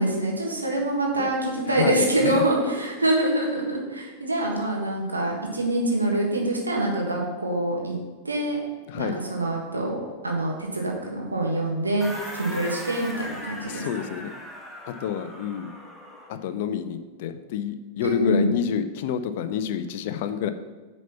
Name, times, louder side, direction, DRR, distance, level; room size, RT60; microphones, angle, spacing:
voice 1, 0.0-8.0 8.2-8.6 9.0-10.0 10.2-13.9 18.0-18.5, right 1 dB, 80° right, -1 dB, 1.6 m, -25 dB
voice 2, 1.7-2.4 8.9-9.2 13.7-14.3 14.9-15.7 16.3-20.5, left 8 dB, 50° left, 11 dB, 0.6 m, -28 dB
sound 1, 12.0-16.4, equal, ahead, 1.2 m, -39 dB
9.2 x 4.2 x 5.6 m, 1.3 s
figure-of-eight pair, 90°, 0 cm